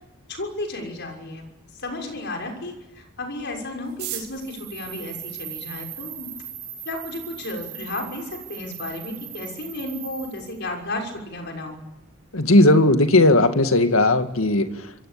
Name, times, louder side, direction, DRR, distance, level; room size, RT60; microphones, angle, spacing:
voice 1, 0.3-1.4 1.7-6.3 6.8-11.8, left 2 dB, 55° left, 2 dB, 6.2 m, -33 dB
sound 1, 3.8-6.1 6.9-7.0 7.2-7.3 7.5-8.0 8.4-8.5 8.6-9.1 9.4-9.6 9.9-10.2, right 12 dB, 55° right, 5.8 m, -38 dB
sound 2, 4.3-10.6, right 10 dB, 80° right, 6.3 m, -39 dB
voice 2, 12.3-14.7, left 2 dB, 80° left, 8 dB, 2.0 m, -16 dB
27.0 x 23.0 x 8.7 m, 1.0 s
head